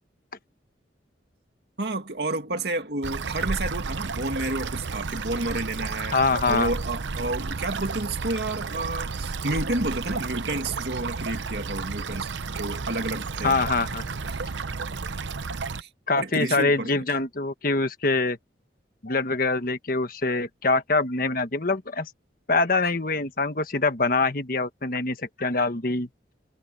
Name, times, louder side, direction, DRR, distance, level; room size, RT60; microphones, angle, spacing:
voice 1, 1.8-6.2 6.5-13.6 14.3-14.4 15.8-15.9 16.2-17.0, right 2 dB, 60° right, 2.3 m, -30 dB
sound 1, 3.0-15.8, right 4 dB, 85° right, 0.8 m, -32 dB
voice 2, 6.1-6.7 13.4-14.0 16.1-18.4 19.0-22.1 22.5-26.1, left 3 dB, 50° left, 1.5 m, -24 dB
head